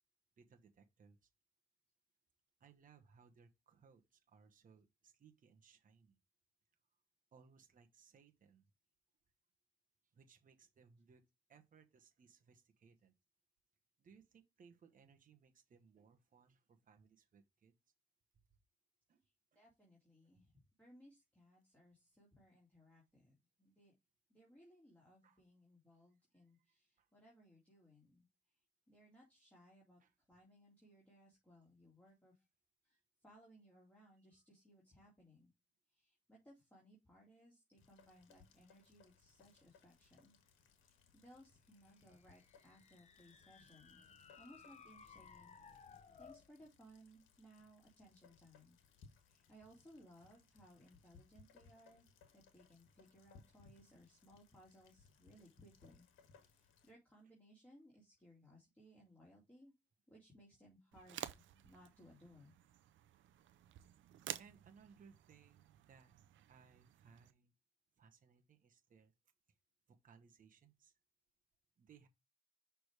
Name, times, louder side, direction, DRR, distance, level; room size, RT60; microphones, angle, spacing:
voice 1, 0.4-1.3 2.6-6.2 7.3-8.6 10.1-11.2 11.5-13.1 14.0-17.7 19.1-19.3 19.5-19.6 25.2-25.4 25.9-26.0 27.0-27.1 30.0-30.1 34.2-34.4 64.4-66.2 66.5-67.5 68.0-69.1 69.9-70.9 71.8-72.1, right 6 dB, 40° right, 1.0 m, -66 dB
voice 2, 19.5-23.9 24.3-28.3 28.9-30.0 30.3-32.4 32.8-35.5 35.9-40.4 40.8-44.1 44.4-45.6 45.9-48.8 49.3-52.1 52.3-56.1 56.4-59.7 60.1-61.3 61.5-62.5, equal, 5° left, 2.5 m, -64 dB
Rain, 37.8-56.9, left 5 dB, 80° left, 1.4 m, -68 dB
sound 1, 42.1-46.5, left 6 dB, 35° left, 0.7 m, -60 dB
sound 2, 60.9-67.3, right 12 dB, 75° right, 0.6 m, -52 dB
6.1 x 3.4 x 4.7 m
cardioid pair, 90°, 20 cm